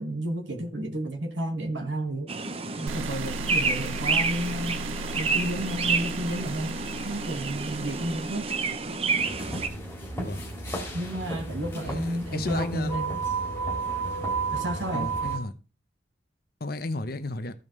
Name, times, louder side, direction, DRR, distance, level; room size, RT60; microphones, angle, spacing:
voice 1, 0.0-2.3 2.8-4.8 5.2-6.8 7.0-8.5 10.9-13.2 14.5-15.1, right 1 dB, 70° right, 1.8 m, -31 dB
sound 1, 2.3-9.7, right 4 dB, 30° right, 0.7 m, -29 dB
sound 2, 2.9-10.0, right 2 dB, 85° right, 0.4 m, -38 dB
sound 3, 9.2-15.4, right 4 dB, 10° left, 2.2 m, -32 dB
voice 2, 11.8-12.9 14.9-15.5 16.6-17.5, left 2 dB, 50° left, 0.9 m, -33 dB
15.0 x 5.4 x 3.2 m
head